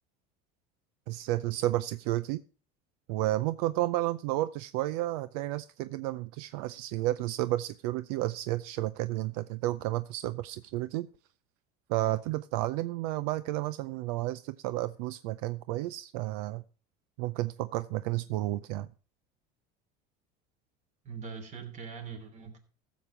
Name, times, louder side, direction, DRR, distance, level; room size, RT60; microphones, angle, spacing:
voice 1, 1.1-2.4 3.1-11.1 11.9-16.6 17.2-18.9, right 16 dB, 80° right, 15 dB, 0.5 m, -31 dB
voice 2, 21.0-22.6, right 6 dB, 40° right, 6 dB, 3.1 m, -42 dB
15.0 x 7.3 x 4.8 m, 0.37 s
cardioid pair, 135°, 19 cm